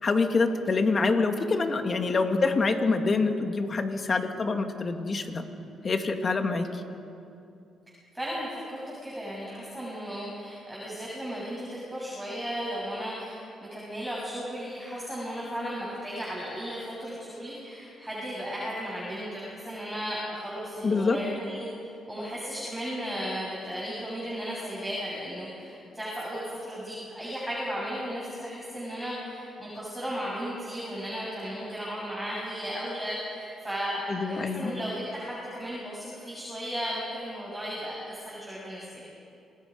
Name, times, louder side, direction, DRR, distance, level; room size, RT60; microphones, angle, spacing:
voice 1, 0.0-5.5 5.8-6.8 20.8-21.2 34.1-34.7, left 3 dB, 40° left, 6 dB, 1.9 m, -26 dB
voice 2, 8.1-21.7 22.1-39.0, equal, 5° right, -7 dB, 7.0 m, -35 dB
27.5 x 19.5 x 5.3 m, 2.6 s
cardioid pair, 90°, 0 cm